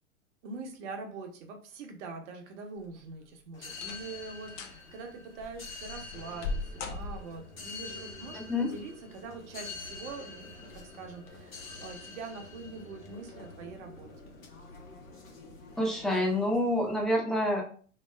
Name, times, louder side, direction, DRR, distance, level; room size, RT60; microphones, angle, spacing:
voice 1, 0.4-14.1, right 4 dB, 65° right, 4 dB, 1.1 m, -44 dB
Door open and Close, 2.8-3.2 3.7-4.2 4.5-4.8 5.4-7.6 8.8-9.3 9.8-9.9 10.6-10.8 11.2-11.3, left 3 dB, 40° left, 0.9 m, -39 dB
sound 1, 3.5-17.0, left 3 dB, 85° left, 1.2 m, -46 dB
voice 2, 8.3-8.7 15.8-17.6, left 1 dB, ahead, -2 dB, 1.1 m, -27 dB
3.3 x 2.8 x 3.3 m, 0.43 s
hypercardioid pair, 100°, 39 cm